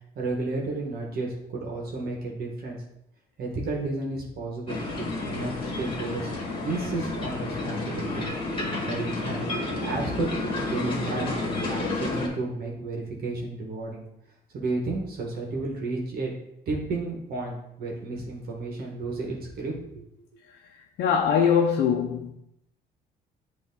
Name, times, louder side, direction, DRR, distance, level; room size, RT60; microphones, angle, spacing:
voice 1, 0.2-2.8 3.4-6.3 6.7-8.3 8.9-9.5 9.8-11.4 11.7-14.0 14.5-16.3 16.7-20.1, right 2 dB, 65° right, 1.7 m, -32 dB
sound 1, 4.7-12.3, left 2 dB, 30° left, 1.9 m, -30 dB
voice 2, 21.0-22.3, left 7 dB, 75° left, 0.7 m, -22 dB
8.3 x 3.3 x 4.0 m
cardioid pair, 110°, 17 cm